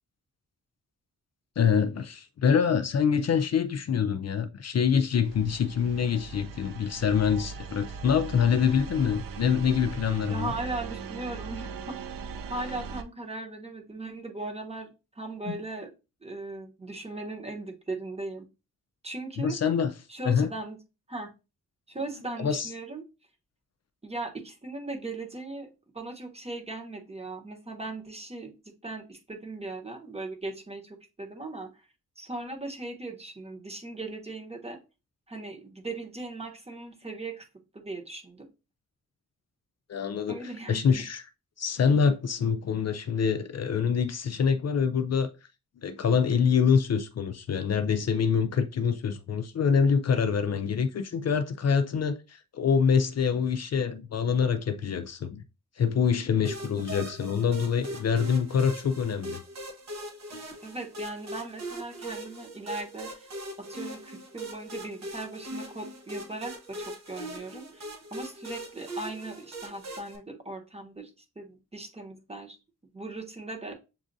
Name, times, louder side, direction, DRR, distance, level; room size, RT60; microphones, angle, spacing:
voice 1, 1.6-10.5 15.5-15.6 19.4-19.9 20.3-20.5 22.4-22.7 39.9-41.2 41.6-45.3 45.8-55.4 55.8-59.4, left 6 dB, 50° left, 0.4 m, -25 dB
sound 1, 5.2-13.0, right 5 dB, 85° right, 0.5 m, -39 dB
voice 2, 10.3-12.0 12.5-15.9 16.2-18.5 19.0-19.5 20.1-20.8 21.1-21.3 21.9-23.0 24.0-25.7 25.9-28.5 28.8-31.9 32.2-34.8 35.3-37.5 37.7-38.5 40.3-41.0 56.9-57.0 60.6-63.3 63.7-67.8 68.1-72.6 72.9-73.7, right 2 dB, 20° right, 1.1 m, -38 dB
sound 2, 56.4-70.2, right 1 dB, 55° right, 1.0 m, -41 dB
7.2 x 2.4 x 2.6 m
wide cardioid pair, 105°, 32 cm